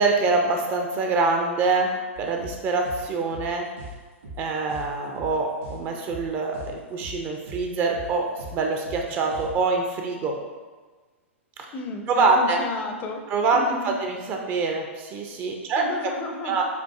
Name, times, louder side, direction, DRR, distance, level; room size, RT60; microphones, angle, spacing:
voice 1, 0.0-3.6 4.4-10.4 11.6-11.7 12.1-12.6 13.3-15.8 16.4-16.6, right 3 dB, 30° right, 2 dB, 0.4 m, -25 dB
sound 1, 2.2-9.5, equal, 65° right, 1.3 m, -40 dB
voice 2, 11.7-13.2 13.5-13.9 15.8-16.6, left 3 dB, 25° left, 4 dB, 0.5 m, -33 dB
6.8 x 2.6 x 2.3 m, 1.4 s
figure-of-eight pair, 100°, 7 cm